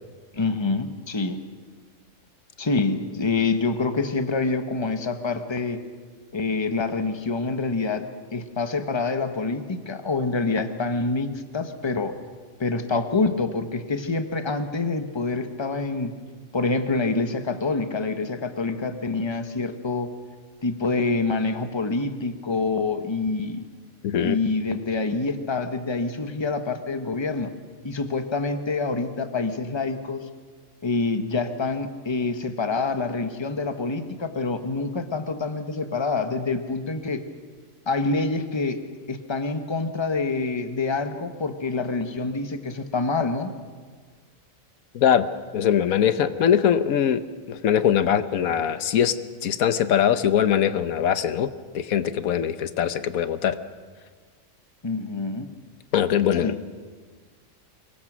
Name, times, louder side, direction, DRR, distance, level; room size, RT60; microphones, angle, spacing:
voice 1, 0.3-1.4 2.6-5.8 6.3-8.1 8.3-12.1 12.6-16.2 16.5-20.1 20.6-23.6 24.2-27.5 27.8-30.2 30.8-37.2 37.9-38.8 39.1-43.5 54.8-55.5 56.4-56.6, left 3 dB, 20° left, 8 dB, 1.2 m, -26 dB
voice 2, 24.0-24.4 44.9-45.3 45.5-47.2 47.5-49.1 49.4-51.5 51.7-53.6 55.9-56.5, left 9 dB, 85° left, 12 dB, 1.3 m, -21 dB
24.5 x 21.5 x 6.2 m, 1.6 s
omnidirectional pair, 1.4 m